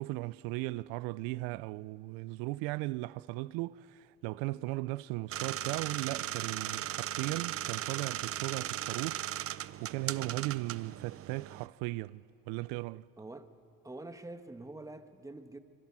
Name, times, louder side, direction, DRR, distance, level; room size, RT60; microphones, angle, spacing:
voice 1, 0.0-13.0, right 20 dB, 85° right, 0.5 m, -37 dB
sound 1, 5.3-11.7, right 11 dB, 40° right, 0.6 m, -37 dB
voice 2, 13.2-13.5 13.8-15.6, right 2 dB, 10° right, 1.5 m, -46 dB
25.0 x 25.0 x 6.1 m
supercardioid pair, 90°, 35 cm